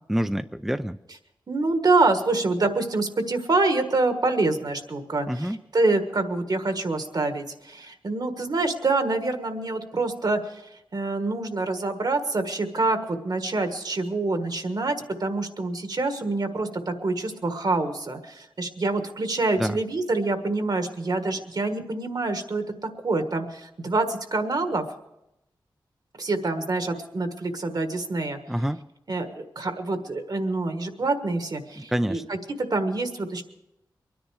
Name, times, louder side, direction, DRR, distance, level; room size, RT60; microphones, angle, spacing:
voice 1, 0.1-1.0 5.3-5.6 19.6-19.8 28.5-28.8 31.8-32.3, equal, 5° right, 9 dB, 0.5 m, -27 dB
voice 2, 1.5-10.6 10.9-14.9 15.2-24.8 26.2-28.4 29.1-33.4, right 3 dB, 55° right, 7 dB, 1.5 m, -26 dB
23.0 x 10.5 x 4.8 m, 0.89 s
cardioid pair, 55°, 8 cm